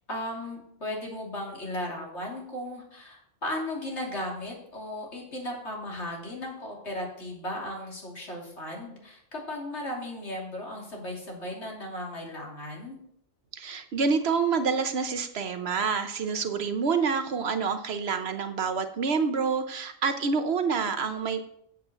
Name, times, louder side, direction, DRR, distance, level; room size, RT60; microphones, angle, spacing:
voice 1, 0.1-13.0, left 1 dB, 65° left, -2 dB, 3.3 m, -36 dB
voice 2, 13.5-21.5, right 5 dB, 60° right, 9 dB, 1.0 m, -27 dB
8.4 x 7.6 x 6.7 m, 0.73 s
omnidirectional pair, 1.2 m